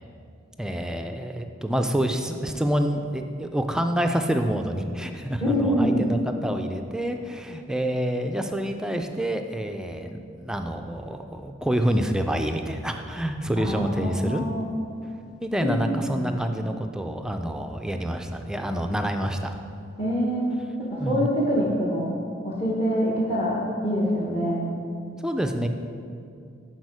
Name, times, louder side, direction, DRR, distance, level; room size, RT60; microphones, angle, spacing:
voice 1, 0.6-14.4 15.4-19.6 21.0-21.3 25.2-25.7, equal, 5° right, 5 dB, 0.3 m, -27 dB
voice 2, 5.4-6.0 13.6-14.7 15.6-16.4 20.0-20.5 20.9-22.1 22.4-24.6, equal, 30° left, -6 dB, 1.1 m, -25 dB
10.5 x 4.4 x 4.8 m, 2.4 s
head